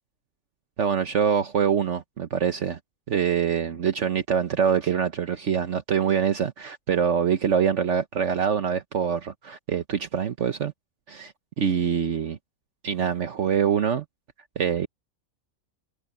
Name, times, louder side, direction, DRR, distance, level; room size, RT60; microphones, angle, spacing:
voice 1, 0.8-2.8 3.1-10.7 11.1-12.4 12.8-14.0 14.6-14.9, right 7 dB, 60° right, 1.2 m, -24 dB
omnidirectional pair, 1.5 m